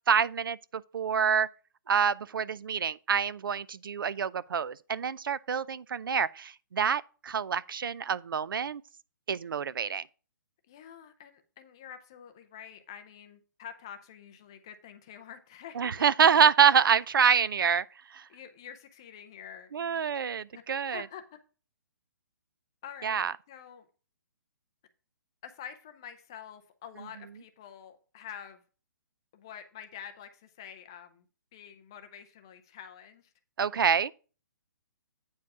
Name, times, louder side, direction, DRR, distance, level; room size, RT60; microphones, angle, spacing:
voice 1, 0.1-1.5 1.9-8.8 9.3-10.0 15.8-17.8 18.1-18.2 19.7-21.0 23.0-23.3 33.6-34.1, right 7 dB, 85° right, 0.4 m, -26 dB
voice 2, 10.7-16.1 18.3-20.6 20.9-21.2 22.8-23.9 25.4-28.6 29.3-31.2 31.5-33.3, left 9 dB, 10° left, 0.3 m, -47 dB
8.6 x 4.7 x 4.7 m
hypercardioid pair, 180°, 11 cm